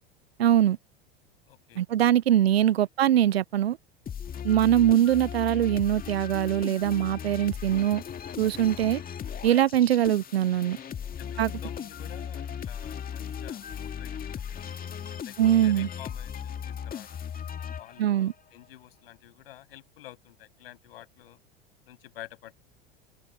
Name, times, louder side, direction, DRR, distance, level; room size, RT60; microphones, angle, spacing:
voice 1, 0.4-0.8 1.8-3.8 4.4-8.0 8.4-9.0 9.4-10.8 11.4-11.5 15.4-15.9 18.0-18.3, right 11 dB, 90° right, 0.5 m, -22 dB
voice 2, 1.5-1.8 2.7-2.9 4.3-4.7 7.5-8.0 8.7-9.0 11.2-14.7 15.2-17.2 17.8-21.4 21.8-22.6, left 14 dB, 75° left, 7.6 m, -50 dB
sound 1, 4.1-18.3, left 8 dB, 30° left, 2.1 m, -37 dB
open air
hypercardioid pair, 85°, 30 cm